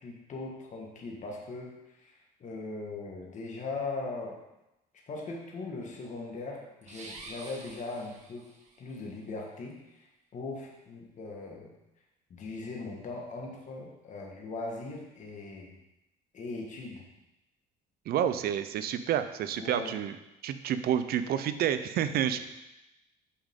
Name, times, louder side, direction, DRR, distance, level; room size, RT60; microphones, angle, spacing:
voice 1, 0.0-4.4 5.1-8.5 8.8-10.1 10.3-11.7 12.3-15.7 16.3-17.0 19.6-20.0 22.3-22.4, left 3 dB, 45° left, -1 dB, 1.7 m, -39 dB
sound 1, 6.8-8.8, right 2 dB, 45° right, 1.5 m, -47 dB
voice 2, 18.1-20.2 20.4-22.4, right 9 dB, 65° right, 11 dB, 0.6 m, -29 dB
8.6 x 5.4 x 3.8 m, 0.94 s
cardioid pair, 110°, 17 cm